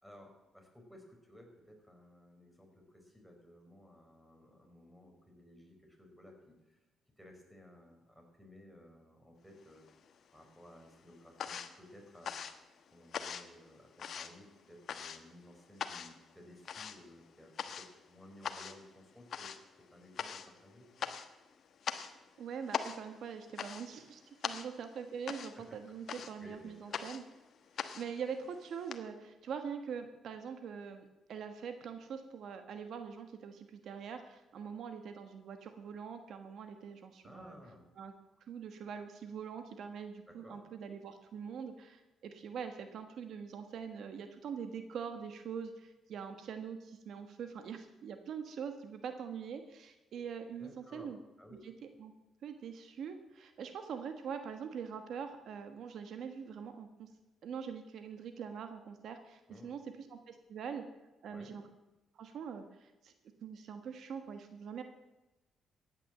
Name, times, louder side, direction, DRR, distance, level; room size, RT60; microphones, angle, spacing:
voice 1, 0.0-6.8 7.2-9.8 10.3-12.3 12.9-21.1 24.5-24.7 25.6-25.7 26.4-27.0 37.2-37.8 40.3-40.6 50.6-51.1 51.4-51.6 59.5-59.7 61.3-61.5, left 1 dB, ahead, 2 dB, 4.8 m, -57 dB
sound 1, 9.6-10.4 10.7-29.0, left 7 dB, 60° left, 1.2 m, -42 dB
voice 2, 22.4-27.2 27.9-37.5 38.0-38.1 38.4-51.2 51.6-51.7 52.0-52.1 52.4-57.1 57.4-59.8 60.1-60.8 61.2-61.6 62.1-63.1 63.4-64.8, right 7 dB, 70° right, 7 dB, 1.3 m, -43 dB
14.5 x 9.8 x 7.4 m, 1.0 s
cardioid pair, 90°, 0 cm